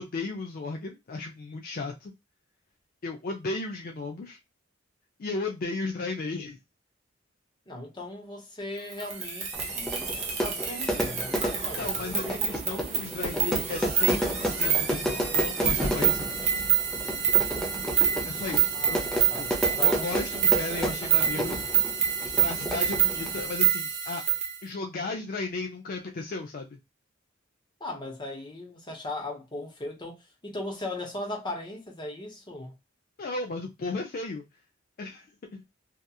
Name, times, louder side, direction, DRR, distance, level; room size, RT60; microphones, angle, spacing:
voice 1, 0.0-2.1 3.0-4.4 5.2-6.6 11.8-16.5 18.3-19.0 19.4-21.6 22.4-24.2 24.6-26.8 33.2-34.4 35.0-35.3 35.5-35.6, left 3 dB, 50° left, 0.4 m, -35 dB
voice 2, 7.7-12.5 18.7-19.5 19.8-20.1 27.8-30.2 30.4-32.7, left 2 dB, 25° left, 0.9 m, -38 dB
sound 1, 8.9-24.6, right 9 dB, 35° right, 0.8 m, -27 dB
Fire / Fireworks, 9.5-23.6, equal, 5° left, 0.6 m, -32 dB
2.8 x 2.3 x 2.2 m
head